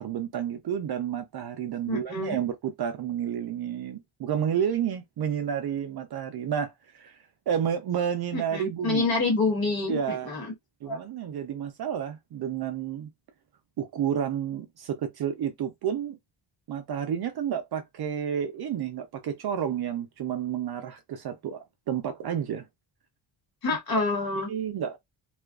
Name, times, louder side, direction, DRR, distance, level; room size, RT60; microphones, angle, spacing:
voice 1, 0.0-7.2 7.5-9.1 9.9-10.3 10.8-13.1 13.8-16.2 16.7-22.6 24.5-25.0, right 8 dB, 55° right, 0.5 m, -30 dB
voice 2, 1.9-2.4 8.3-10.5 10.9-11.0 23.6-24.5, left 3 dB, 50° left, 1.3 m, -27 dB
2.4 x 2.2 x 2.2 m
cardioid pair, 120°, 48 cm